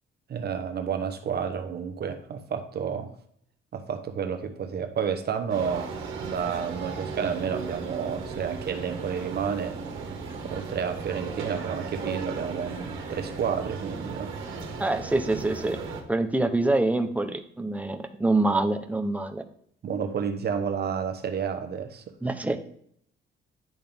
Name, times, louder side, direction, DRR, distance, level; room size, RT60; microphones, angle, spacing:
voice 1, 0.3-3.1 3.7-5.9 6.2-9.8 10.4-14.3 19.8-22.1, right 7 dB, 55° right, 7 dB, 1.1 m, -30 dB
sound 1, 5.5-16.0, right 4 dB, 85° right, 1.7 m, -36 dB
voice 2, 14.8-15.8 16.1-19.4 22.2-22.6, right 2 dB, 5° right, 6 dB, 0.9 m, -25 dB
10.5 x 3.7 x 3.6 m, 0.65 s
cardioid pair, 90°, 20 cm